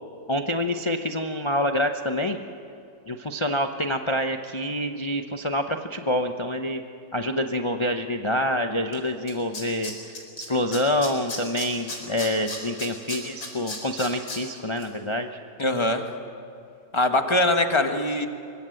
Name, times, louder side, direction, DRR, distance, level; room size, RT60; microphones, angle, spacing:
voice 1, 0.3-2.4 3.1-6.8 7.1-9.9 10.5-15.3, left 1 dB, 35° left, 5 dB, 0.4 m, -26 dB
Tools, 8.9-9.0 9.3-10.5 10.7-14.4 14.8-14.9, left 3 dB, 75° left, 5.2 m, -34 dB
voice 2, 15.6-16.0 16.9-18.3, left 2 dB, 15° left, 5 dB, 1.3 m, -22 dB
24.5 x 23.5 x 7.8 m, 2.6 s
omnidirectional pair, 2.1 m